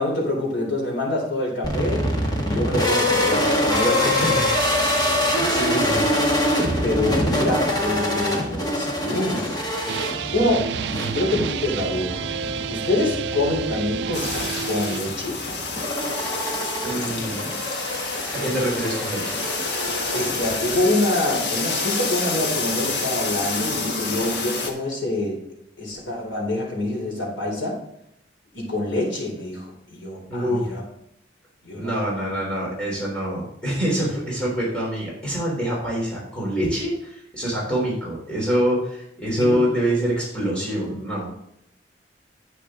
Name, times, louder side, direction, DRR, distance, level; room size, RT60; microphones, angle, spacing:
voice 1, 0.0-2.0 2.4-4.3 6.8-9.6 10.3-12.2 12.7-15.4 20.1-25.4 25.8-27.8 28.5-30.8 31.6-32.0 39.4-39.6, left 1 dB, 90° left, -2 dB, 3.9 m, -26 dB
sound 1, 1.6-20.8, left 1 dB, 20° left, 1.6 m, -25 dB
voice 2, 4.0-4.5 5.5-6.1 16.8-17.5 18.3-19.4 30.3-30.7 31.7-41.3, equal, 5° left, -6 dB, 3.8 m, -25 dB
sound 2, 9.9-15.0, right 6 dB, 65° right, 0.4 m, -30 dB
sound 3, 14.1-24.7, left 3 dB, 65° left, 1.4 m, -28 dB
9.9 x 8.5 x 3.8 m, 0.76 s
head